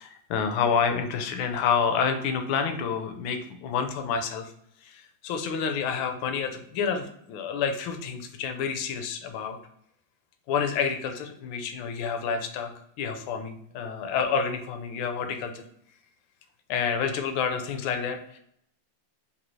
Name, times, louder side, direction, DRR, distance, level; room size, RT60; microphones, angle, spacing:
voice 1, 0.0-4.4 4.9-9.6 10.5-12.7 13.0-15.5 16.7-18.4, left 6 dB, 75° left, 6 dB, 1.3 m, -28 dB
4.1 x 2.7 x 3.0 m, 0.71 s
omnidirectional pair, 2.3 m